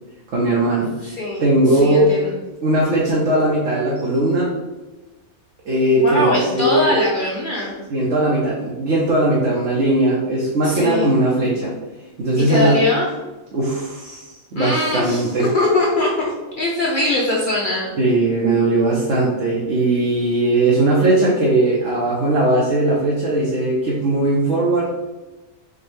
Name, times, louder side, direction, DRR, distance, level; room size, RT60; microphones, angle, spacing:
voice 1, 0.3-2.1 2.6-4.5 5.6-7.0 7.9-11.7 12.2-12.8 13.5-15.5 18.0-24.9, right 2 dB, 60° right, -4 dB, 0.9 m, -19 dB
voice 2, 1.0-2.4 6.0-7.7 10.6-11.1 12.4-13.1 14.6-17.9, left 2 dB, 70° left, -3 dB, 0.5 m, -21 dB
4.7 x 2.3 x 3.1 m, 1.1 s
omnidirectional pair, 1.5 m